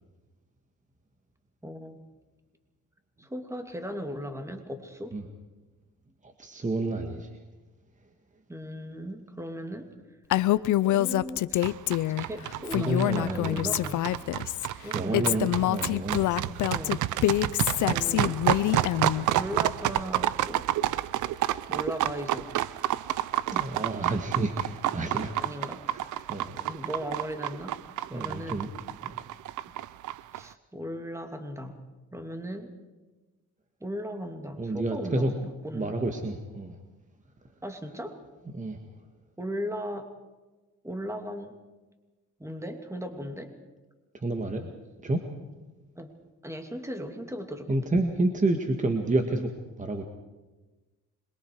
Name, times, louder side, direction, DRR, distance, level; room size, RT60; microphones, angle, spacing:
voice 1, 1.6-2.0 3.2-5.2 8.5-9.9 10.8-11.8 12.2-14.1 14.8-15.4 16.7-17.0 17.9-18.4 19.2-20.7 21.7-22.5 25.4-25.8 26.2-27.7 28.1-28.6 30.3-31.8 32.1-32.7 33.8-35.9 37.6-38.2 39.4-40.1 40.8-41.5 42.4-43.5 46.0-46.1 46.4-47.8, equal, 10° right, 5 dB, 2.6 m, -37 dB
voice 2, 6.2-7.3 12.7-13.8 14.9-16.6 23.5-25.4 25.9-26.6 28.1-28.7 29.0-29.2 34.6-35.3 35.7-36.8 38.5-38.8 44.2-44.7 45.0-45.2 47.7-49.5 49.8-50.0, right 2 dB, 25° right, 4 dB, 1.9 m, -29 dB
Female speech woman speaking, 10.3-12.3 12.7-14.7 15.1-19.3, left 15 dB, 80° left, 0.7 m, -26 dB
sound 1, 11.6-30.4, right 14 dB, 80° right, 0.7 m, -30 dB
26.5 x 22.5 x 4.8 m, 1.2 s
cardioid pair, 90°, 30 cm